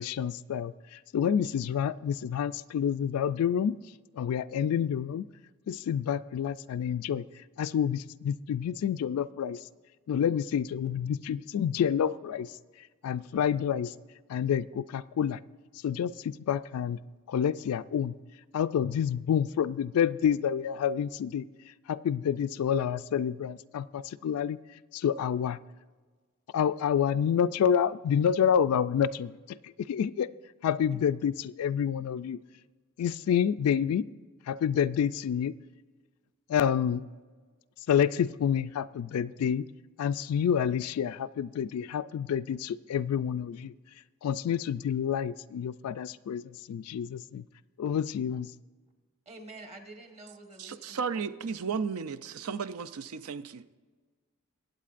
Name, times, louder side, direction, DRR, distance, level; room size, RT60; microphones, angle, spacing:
voice 1, 0.0-3.8 4.1-5.2 5.7-7.2 7.6-9.6 10.1-12.5 13.0-13.9 14.3-15.4 15.8-17.0 17.3-18.2 18.5-21.5 21.9-24.6 24.9-25.6 26.5-30.3 30.6-32.4 33.0-34.1 34.5-35.5 36.5-37.1 37.9-39.7 40.0-43.7 44.2-47.4 47.8-48.5, left 8 dB, 85° left, 15 dB, 0.3 m, -28 dB
voice 2, 49.2-51.0, right 2 dB, 30° right, 3 dB, 1.3 m, -47 dB
voice 3, 50.6-53.7, right 6 dB, 80° right, 13 dB, 0.5 m, -34 dB
22.5 x 8.1 x 2.5 m, 1.4 s
head